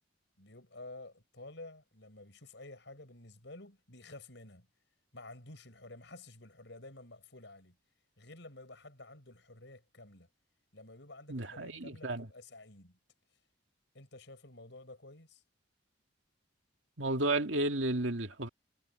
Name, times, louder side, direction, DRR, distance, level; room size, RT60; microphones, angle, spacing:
voice 1, 0.4-4.7 5.1-7.8 8.2-10.3 10.7-13.0 13.9-15.4, left 2 dB, 65° left, 7.6 m, -51 dB
voice 2, 11.3-12.3 17.0-18.5, right 2 dB, 75° right, 2.3 m, -32 dB
head